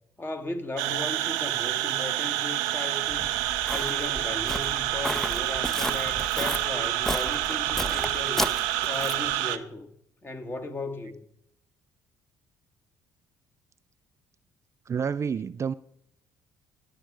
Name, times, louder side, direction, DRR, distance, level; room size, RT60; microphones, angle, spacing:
voice 1, 0.2-3.3 3.7-8.5 8.9-9.9 10.2-11.2, left 2 dB, 25° left, 1.7 m, -36 dB
sound 1, 0.8-9.6, right 15 dB, 85° right, 0.6 m, -28 dB
Walk footsteps, 3.1-9.4, equal, 5° left, 0.7 m, -34 dB
voice 2, 14.9-15.7, right 6 dB, 35° right, 0.4 m, -29 dB
11.5 x 9.0 x 4.9 m
hypercardioid pair, 60°, 8 cm